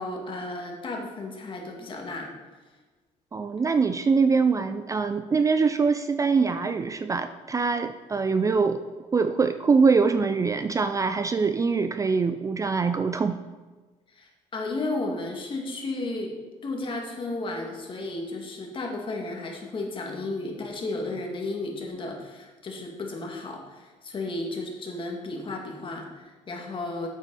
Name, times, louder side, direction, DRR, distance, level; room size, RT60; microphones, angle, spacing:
voice 1, 0.0-2.3 14.1-16.3 16.6-27.1, left 2 dB, 35° left, 1 dB, 2.1 m, -33 dB
voice 2, 3.3-13.4, right 4 dB, 25° right, 9 dB, 0.4 m, -23 dB
8.4 x 8.2 x 4.1 m, 1.3 s
cardioid pair, 100°, 14 cm